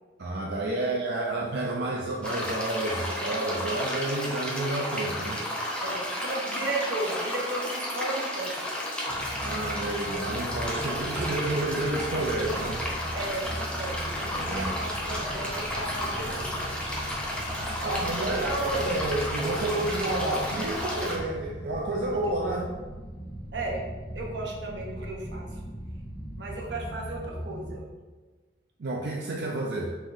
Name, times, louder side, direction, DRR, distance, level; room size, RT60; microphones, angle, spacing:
voice 1, 0.2-5.4 9.4-12.8 14.3-14.7 17.8-22.7 28.8-30.0, right 2 dB, 70° right, -2 dB, 0.5 m, -30 dB
voice 2, 1.3-1.8 5.8-8.6 13.1-16.9 17.8-18.7 22.1-22.5 23.5-23.9 24.1-25.6 26.4-27.9, right 2 dB, 90° right, 0 dB, 0.9 m, -35 dB
sound 1, 2.2-21.2, left 1 dB, 5° left, 0.6 m, -33 dB
sound 2, 9.1-27.8, equal, 60° left, 1.4 m, -39 dB
5.0 x 3.7 x 2.6 m, 1.3 s
head